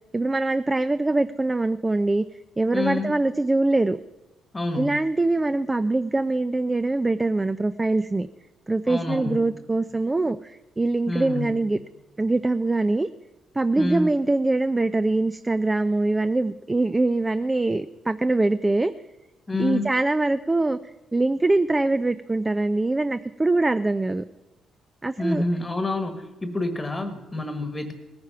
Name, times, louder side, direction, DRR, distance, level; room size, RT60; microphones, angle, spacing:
voice 1, 0.1-2.2 2.6-4.0 4.8-8.3 8.7-11.8 12.2-13.1 13.5-18.9 19.6-24.2 25.0-25.4, right 2 dB, 20° right, 13 dB, 0.4 m, -23 dB
voice 2, 2.7-3.1 4.5-5.0 8.9-9.4 11.1-11.5 13.8-14.1 19.5-19.9 25.2-27.9, left 2 dB, 20° left, 8 dB, 1.4 m, -28 dB
18.5 x 9.6 x 5.7 m, 1.1 s
cardioid pair, 90°, 0 cm